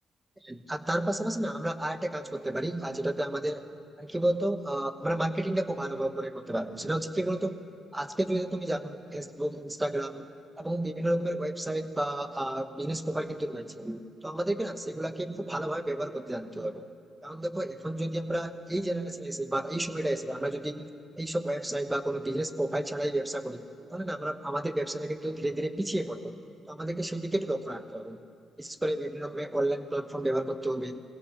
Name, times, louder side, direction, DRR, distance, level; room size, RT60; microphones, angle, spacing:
voice 1, 0.4-3.7 4.0-7.6 7.9-10.3 10.6-16.9 17.2-20.9 21.2-26.4 26.7-28.2 28.6-31.0, right 1 dB, 10° right, 10 dB, 1.1 m, -31 dB
21.5 x 16.5 x 7.3 m, 2.5 s
cardioid pair, 90°, 0 cm